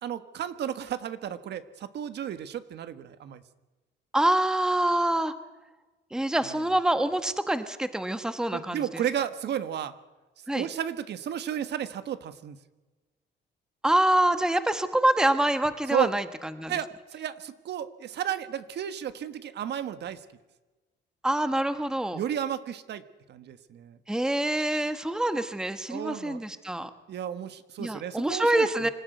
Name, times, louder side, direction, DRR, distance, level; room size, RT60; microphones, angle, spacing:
voice 1, 0.0-3.4 8.5-9.9 10.5-12.6 15.9-16.1 16.7-20.2 22.1-23.0 23.3-24.0 25.9-26.4 27.1-28.9, right 9 dB, 65° right, 11 dB, 1.5 m, -33 dB
voice 2, 4.1-5.3 6.1-9.0 10.5-10.7 13.8-16.2 16.6-16.7 21.2-22.2 24.1-26.9 27.8-28.9, right 1 dB, 5° right, 10 dB, 1.2 m, -26 dB
26.0 x 15.5 x 9.3 m, 1.2 s
cardioid pair, 145°, 19 cm